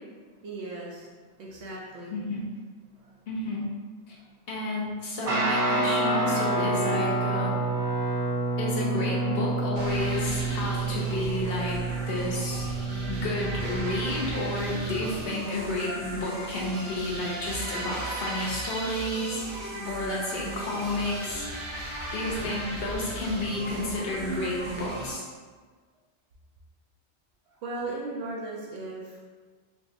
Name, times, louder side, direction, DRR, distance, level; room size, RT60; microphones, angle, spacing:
voice 1, 0.4-1.1 1.4-2.1 3.0-3.1 4.1-4.3 27.6-29.2, right 2 dB, 70° right, -4 dB, 0.8 m, -37 dB
voice 2, 2.1-2.5 3.3-3.7 4.1-4.2 4.5-7.5 8.6-12.7 13.1-19.4 19.9-21.5 22.1-25.2, left 1 dB, 65° left, -4 dB, 0.8 m, -31 dB
Guitar, 5.2-15.1, right 2 dB, 55° right, 0.4 m, -28 dB
sound 1, 9.7-25.1, right 1 dB, 90° right, 1.1 m, -36 dB
sound 2, 20.5-21.5 22.4-22.7 23.3-24.4, left 1 dB, 30° left, 0.6 m, -47 dB
3.5 x 2.6 x 2.4 m, 1.5 s
omnidirectional pair, 1.2 m